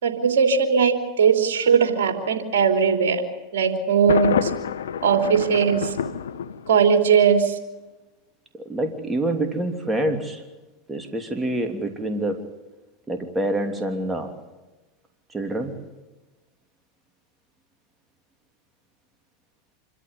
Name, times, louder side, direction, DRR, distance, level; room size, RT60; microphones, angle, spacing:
voice 1, 0.0-3.2 3.5-4.5 5.0-5.9 6.7-7.5, right 6 dB, 75° right, 5 dB, 3.1 m, -19 dB
Thunder, 4.1-7.1, left 8 dB, 80° left, 1.1 m, -28 dB
voice 2, 8.5-10.4 10.9-12.4 13.1-14.3 15.3-15.7, right 1 dB, 10° right, 5 dB, 3.1 m, -26 dB
26.5 x 13.5 x 9.7 m, 1.1 s
hypercardioid pair, 105°, 0 cm